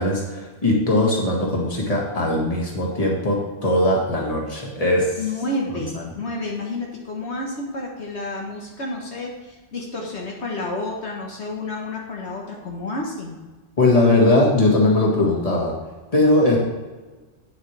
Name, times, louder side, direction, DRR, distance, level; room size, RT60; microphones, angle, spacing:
voice 1, 0.0-5.1 13.8-15.7 16.1-16.6, left 2 dB, 30° left, -2 dB, 1.9 m, -19 dB
voice 2, 5.2-13.4, left 2 dB, 70° left, -2 dB, 1.5 m, -30 dB
9.0 x 7.8 x 3.3 m, 1.3 s
omnidirectional pair, 1.2 m